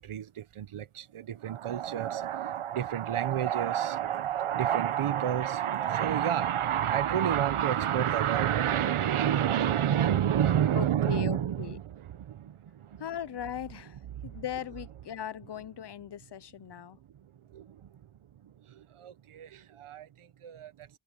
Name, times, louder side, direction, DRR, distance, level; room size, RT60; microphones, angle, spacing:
voice 1, 0.0-13.0 14.0-14.4 17.1-18.1 18.4-20.9, right 10 dB, 85° right, 1.0 m, -29 dB
voice 2, 10.7-11.8 13.0-14.0 14.2-17.0, left 10 dB, 55° left, 0.7 m, -38 dB
wide cardioid pair, 120°, 49 cm